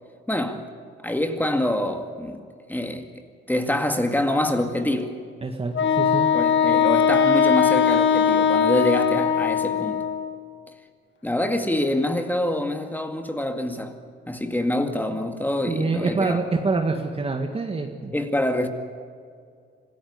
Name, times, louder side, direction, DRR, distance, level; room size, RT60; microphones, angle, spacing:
voice 1, 0.3-0.6 1.0-2.4 2.7-3.1 3.5-5.2 6.3-10.0 11.2-14.0 14.3-16.4 18.1-18.7, left 1 dB, 10° left, 2.1 m, -25 dB
voice 2, 5.4-6.3 15.7-18.1, right 3 dB, 30° right, 1.8 m, -26 dB
Wind instrument woodwind instrument, 5.7-10.4, left 7 dB, 70° left, 1.5 m, -20 dB
26.5 x 14.0 x 9.7 m
cardioid pair, 90°, 20 cm